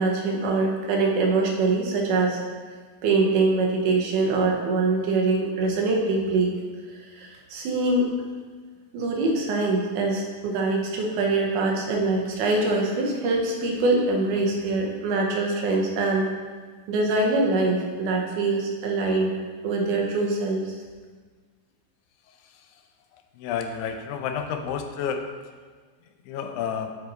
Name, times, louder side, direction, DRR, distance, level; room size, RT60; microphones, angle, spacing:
voice 1, 0.0-2.4 3.0-6.6 6.9-8.1 8.9-16.3 16.9-19.3 19.6-20.8, right 3 dB, 85° right, 0 dB, 2.5 m, -24 dB
voice 2, 23.4-25.3 26.3-27.0, left 7 dB, 80° left, 6 dB, 1.9 m, -30 dB
8.1 x 4.3 x 4.0 m, 1.5 s
omnidirectional pair, 3.5 m